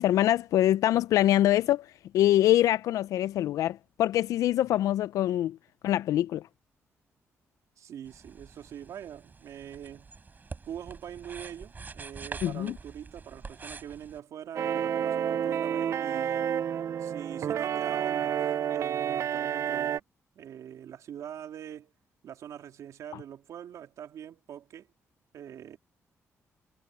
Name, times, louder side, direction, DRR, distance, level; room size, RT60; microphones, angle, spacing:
voice 1, 0.0-1.9 2.1-5.6 5.8-6.4 12.4-12.7, left 13 dB, 90° left, 0.3 m, -24 dB
voice 2, 7.8-10.1 10.6-16.5 17.0-20.0 20.3-21.9 22.2-24.9 25.3-25.8, right 9 dB, 80° right, 3.2 m, -43 dB
sound 1, 8.0-14.2, right 4 dB, 35° right, 4.8 m, -45 dB
sound 2, 14.6-20.0, right 9 dB, 60° right, 0.4 m, -29 dB
cardioid pair, 100°, 6 cm